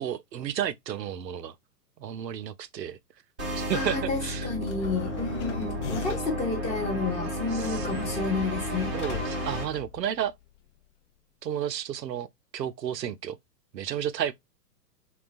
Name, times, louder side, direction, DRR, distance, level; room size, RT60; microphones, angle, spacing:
voice 1, 0.0-1.5 2.0-3.0 3.6-4.5 7.5-7.9 8.9-10.4 11.4-12.3 12.5-13.4 13.7-14.3, right 10 dB, 85° right, 0.5 m, -32 dB
sound 1, 3.4-9.6, equal, 5° right, 0.3 m, -32 dB
voice 2, 3.7-8.9, left 4 dB, 15° left, 0.7 m, -31 dB
sound 2, 4.6-6.5 7.6-10.5, left 9 dB, 50° left, 0.5 m, -40 dB
3.8 x 2.2 x 2.4 m
figure-of-eight pair, 110°, 49 cm